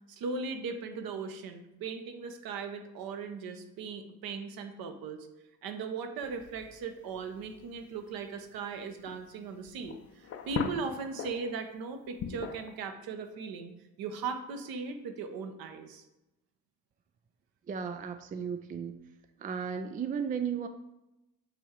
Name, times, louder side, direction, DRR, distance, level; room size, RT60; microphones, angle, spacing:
voice 1, 0.1-5.3 5.6-13.7 14.0-16.0, right 5 dB, 50° right, 7 dB, 1.0 m, -38 dB
sound 1, 6.2-11.7 12.1-12.8, left 7 dB, 35° left, 0.7 m, -40 dB
voice 2, 17.7-18.9 19.4-20.7, right 7 dB, 20° right, 8 dB, 0.4 m, -34 dB
7.9 x 3.6 x 4.8 m, 0.94 s
figure-of-eight pair, 50°, 45 cm